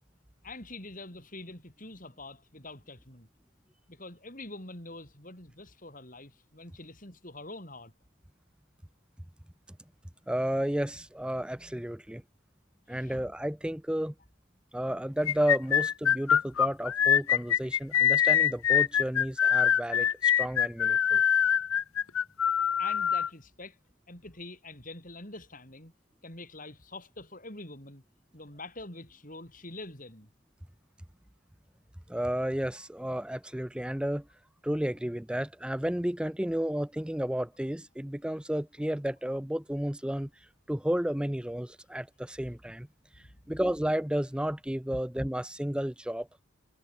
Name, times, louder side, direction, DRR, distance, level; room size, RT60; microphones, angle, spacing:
voice 1, 0.4-3.3 3.9-7.9 12.9-13.1 22.8-23.8 24.1-25.9 26.2-28.0 28.3-30.3 43.2-43.5, left 2 dB, 40° left, 6.5 m, -45 dB
voice 2, 10.3-12.2 12.9-14.1 14.7-21.2 32.1-34.3 34.6-40.3 40.7-42.9 43.2-46.3, equal, 5° right, 0.5 m, -32 dB
sound 1, 15.3-23.3, left 9 dB, 80° left, 0.7 m, -24 dB
head